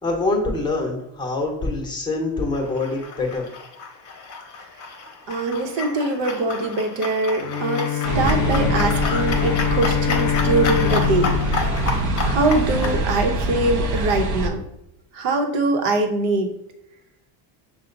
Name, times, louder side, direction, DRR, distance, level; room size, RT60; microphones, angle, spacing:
voice 1, 0.0-3.5, left 2 dB, 10° left, 1 dB, 0.9 m, -25 dB
sound 1, 2.5-13.0, left 4 dB, 35° left, 0.9 m, -31 dB
voice 2, 5.3-11.3 12.2-14.6 15.1-16.5, right 2 dB, 65° right, 5 dB, 1.0 m, -23 dB
Bowed string instrument, 7.4-12.8, left 11 dB, 55° left, 0.6 m, -25 dB
sound 2, 8.0-14.5, right 2 dB, 40° right, 0.7 m, -24 dB
5.7 x 2.3 x 3.8 m, 0.83 s
cardioid pair, 135°, 48 cm